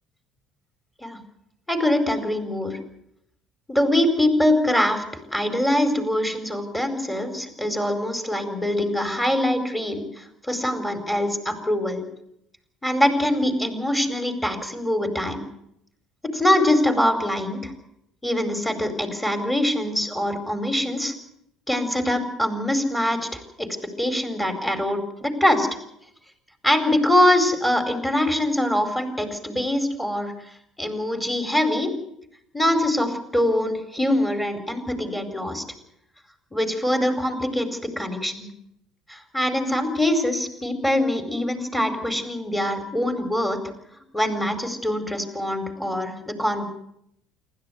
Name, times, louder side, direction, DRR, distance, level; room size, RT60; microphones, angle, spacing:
voice 1, 1.7-2.8 3.7-5.0 5.3-12.0 12.8-15.4 16.3-17.7 18.2-21.1 21.7-23.7 24.0-25.7 26.6-30.3 30.8-31.9 32.5-35.6 36.5-38.5 39.1-43.6 44.1-46.7, left 1 dB, 5° left, 8 dB, 4.6 m, -23 dB
27.0 x 12.5 x 9.5 m, 0.75 s
figure-of-eight pair, 60°, 0 cm